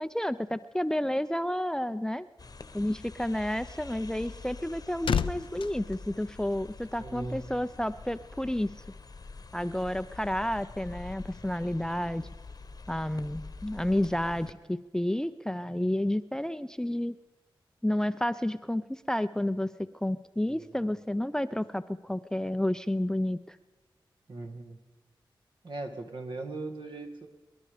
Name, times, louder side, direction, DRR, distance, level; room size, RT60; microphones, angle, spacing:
voice 1, 0.0-2.3 2.7-8.7 9.5-12.3 12.9-17.1 17.8-19.7 20.0-23.6, left 1 dB, 5° left, 14 dB, 0.5 m, -30 dB
sound 1, 2.4-14.5, left 4 dB, 45° left, 1.0 m, -46 dB
sound 2, 4.5-7.0 7.3-7.5, left 7 dB, 80° left, 0.4 m, -34 dB
voice 2, 7.0-7.4 20.5-20.7 24.3-24.8 25.6-27.3, right 2 dB, 65° right, 4 dB, 1.8 m, -39 dB
24.5 x 11.0 x 5.0 m, 1.2 s
cardioid pair, 60°, 9 cm